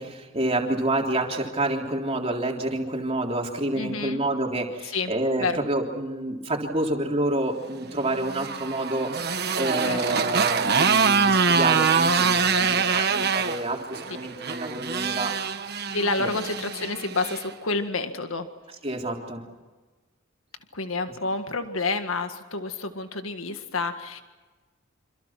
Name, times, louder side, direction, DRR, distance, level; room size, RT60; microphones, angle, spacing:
voice 1, 0.0-9.1 9.6-15.4 16.2-16.3 18.8-19.5, right 1 dB, 30° right, 1 dB, 3.6 m, -28 dB
voice 2, 3.7-4.2 4.8-5.1 5.4-5.6 9.8-10.3 15.9-18.5 20.7-24.2, left 3 dB, 90° left, 7 dB, 1.8 m, -29 dB
Motorcycle, 8.0-17.5, right 5 dB, 50° right, 1.4 m, -24 dB
27.5 x 27.0 x 6.0 m, 1.3 s
head